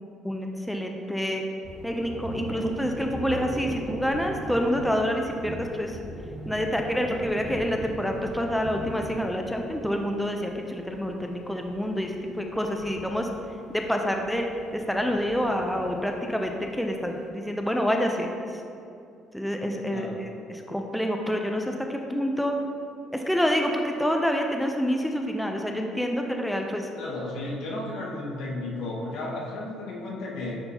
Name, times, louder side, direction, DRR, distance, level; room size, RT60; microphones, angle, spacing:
voice 1, 0.2-1.4 1.8-6.0 6.5-13.3 13.7-14.5 14.7-16.5 16.8-18.3 19.3-22.5 23.1-26.9, equal, 5° left, 2 dB, 0.4 m, -27 dB
Thunder, 1.6-17.2, right 1 dB, 20° right, 0.9 m, -40 dB
voice 2, 26.9-30.5, left 2 dB, 80° left, -4 dB, 1.4 m, -33 dB
9.5 x 4.3 x 2.8 m, 2.5 s
cardioid pair, 125°, 0 cm